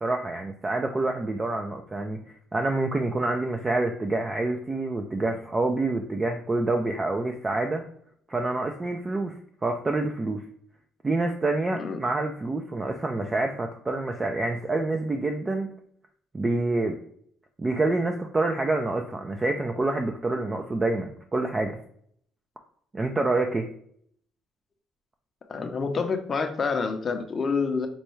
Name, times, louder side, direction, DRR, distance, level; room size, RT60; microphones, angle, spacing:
voice 1, 0.0-7.8 8.3-9.3 9.6-10.4 11.0-15.7 16.3-17.0 17.6-21.8 22.9-23.7, right 2 dB, 20° right, 4 dB, 0.4 m, -27 dB
voice 2, 11.7-12.0 25.5-27.9, left 4 dB, 35° left, 6 dB, 0.6 m, -27 dB
5.3 x 2.2 x 3.1 m, 0.64 s
cardioid pair, 100°, 0 cm